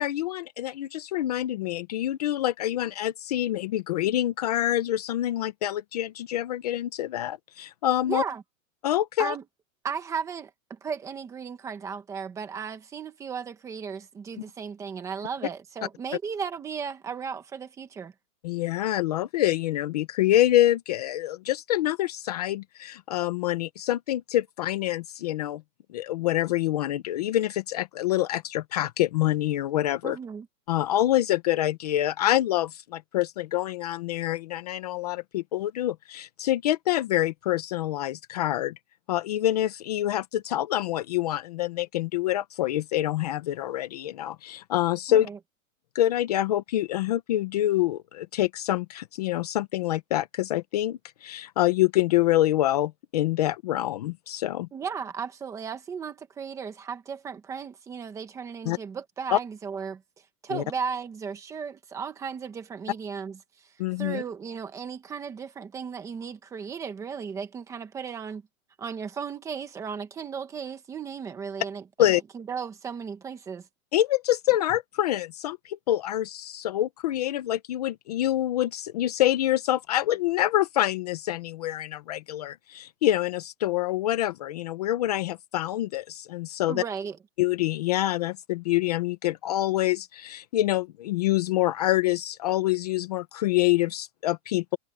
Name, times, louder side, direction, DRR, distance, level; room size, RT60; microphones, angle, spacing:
voice 1, 0.0-8.2 8.8-9.3 18.4-25.6 25.9-30.2 30.7-38.7 39.1-45.3 45.9-54.7 58.6-58.8 59.3-59.4 60.5-60.6 63.8-64.2 72.0-72.2 73.9-86.8 87.4-94.8, left 14 dB, 30° left, 0.8 m, -26 dB
voice 2, 8.1-8.4 9.2-9.4 9.8-18.1 30.0-30.5 45.1-45.4 54.7-60.0 60.4-63.4 64.0-68.4 68.8-73.7 86.7-87.2, right 6 dB, 5° right, 1.1 m, -35 dB
supercardioid pair, 180°, 41 cm